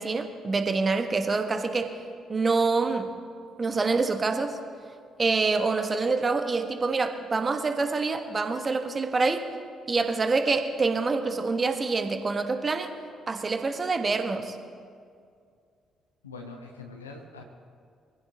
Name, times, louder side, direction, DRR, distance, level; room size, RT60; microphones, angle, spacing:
voice 1, 0.0-1.9 2.3-3.1 3.6-4.6 5.2-9.5 9.9-12.9 13.3-14.6, right 4 dB, 30° right, 7 dB, 1.4 m, -26 dB
voice 2, 16.2-17.4, left 3 dB, 80° left, 2 dB, 1.0 m, -43 dB
23.5 x 16.0 x 3.0 m, 2.2 s
figure-of-eight pair, 45°, 0 cm